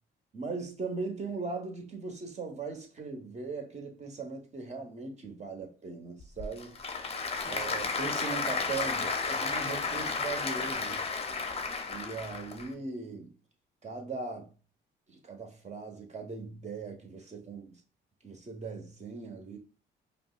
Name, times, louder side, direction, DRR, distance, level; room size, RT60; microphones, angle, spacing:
voice 1, 0.3-6.8 7.4-11.1 11.9-13.3 13.8-14.5 15.1-17.8 18.2-19.6, right 4 dB, 35° right, 1.1 m, -39 dB
Applause / Crowd, 6.2-12.7, left 4 dB, 30° left, 0.6 m, -33 dB
5.2 x 2.1 x 2.4 m
cardioid pair, 90°, 20 cm